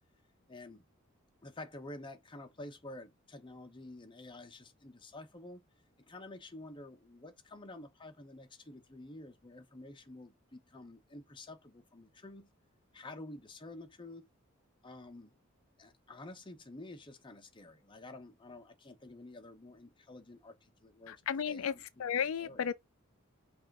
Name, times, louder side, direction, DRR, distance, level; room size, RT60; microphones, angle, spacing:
voice 1, 0.5-0.8 1.4-5.6 6.0-12.5 12.9-14.3 14.8-15.4 15.8-21.2 21.5-22.0 22.4-22.7, left 2 dB, 25° left, 0.8 m, -50 dB
voice 2, 21.1-21.7 22.0-22.7, left 7 dB, 80° left, 0.4 m, -33 dB
5.5 x 2.5 x 3.6 m
head